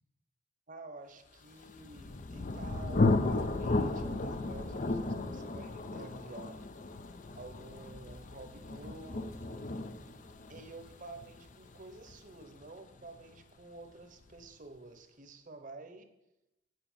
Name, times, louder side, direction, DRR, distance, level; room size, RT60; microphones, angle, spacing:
voice 1, 0.7-6.6 7.3-9.7 10.5-16.1, right 2 dB, 45° right, 8 dB, 1.0 m, -50 dB
Thunder, 1.6-13.2, left 2 dB, 45° left, 0.6 m, -34 dB
9.5 x 5.3 x 7.3 m, 0.91 s
head